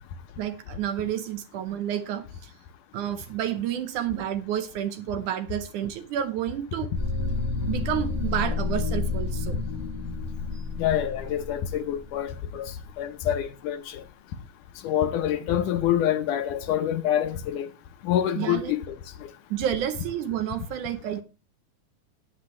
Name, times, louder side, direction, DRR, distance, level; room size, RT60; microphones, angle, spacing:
voice 1, 0.4-2.5 2.9-6.9 7.7-9.6 10.5-10.6 18.4-18.8 19.5-21.2, right 10 dB, 70° right, 2.2 m, -30 dB
sound 1, 7.0-13.0, left 4 dB, 10° right, 2.2 m, -30 dB
voice 2, 10.8-12.7 13.0-14.0 14.8-17.7 18.0-19.0, left 10 dB, 75° left, 2.2 m, -26 dB
14.0 x 9.7 x 3.2 m
omnidirectional pair, 4.0 m